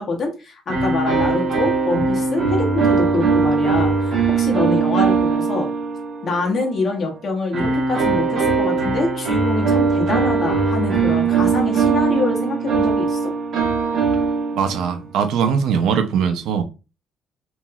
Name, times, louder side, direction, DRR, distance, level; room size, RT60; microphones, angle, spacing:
voice 1, 0.0-5.7 6.2-13.3, left 3 dB, 35° left, 0.8 m, -25 dB
sound 1, 0.7-6.5 7.5-14.9, right 4 dB, 50° right, 1.1 m, -20 dB
voice 2, 14.5-16.6, right 7 dB, 75° right, 0.5 m, -20 dB
3.0 x 2.9 x 2.2 m
cardioid pair, 155°, 0 cm